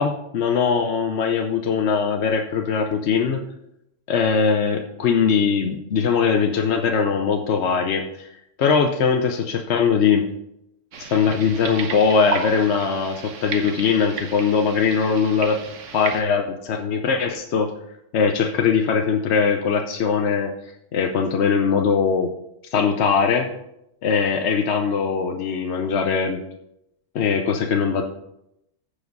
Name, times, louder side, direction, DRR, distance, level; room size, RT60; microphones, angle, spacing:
voice 1, 0.0-3.4 4.1-8.3 8.6-10.3 11.0-15.6 15.9-17.7 18.1-20.5 20.9-22.3 22.7-23.5 24.0-26.4 27.1-28.0, left 6 dB, 65° left, 4 dB, 1.0 m, -21 dB
sound 1, 10.9-16.2, right 6 dB, 80° right, 1.3 m, -33 dB
14.5 x 5.1 x 3.9 m, 0.82 s
omnidirectional pair, 1.3 m